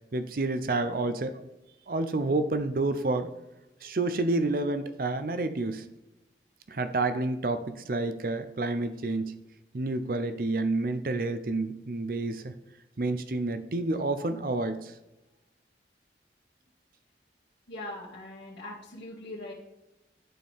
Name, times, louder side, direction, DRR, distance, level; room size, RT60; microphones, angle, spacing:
voice 1, 0.1-1.4 1.9-3.3 3.8-5.9 6.7-9.4 9.7-12.5 13.0-14.9, right 2 dB, 55° right, 10 dB, 0.5 m, -29 dB
voice 2, 17.7-19.5, left 1 dB, 85° left, -9 dB, 2.0 m, -41 dB
12.5 x 4.4 x 3.5 m, 0.95 s
head